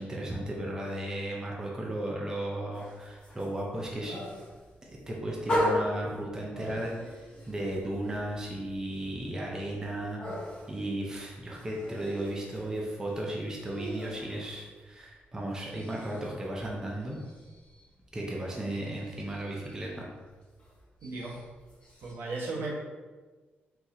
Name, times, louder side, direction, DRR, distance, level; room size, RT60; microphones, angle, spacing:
voice 1, 0.0-4.2 5.1-10.2 10.7-17.2 18.1-20.1, right 1 dB, 15° right, -2 dB, 0.6 m, -35 dB
sound 1, 2.7-15.2 15.5-22.1, left 1 dB, 25° left, 1.1 m, -39 dB
voice 2, 21.0-21.3 22.0-22.7, right 3 dB, 75° right, -4 dB, 1.2 m, -35 dB
4.4 x 4.0 x 2.6 m, 1.3 s
wide cardioid pair, 170°, 4 cm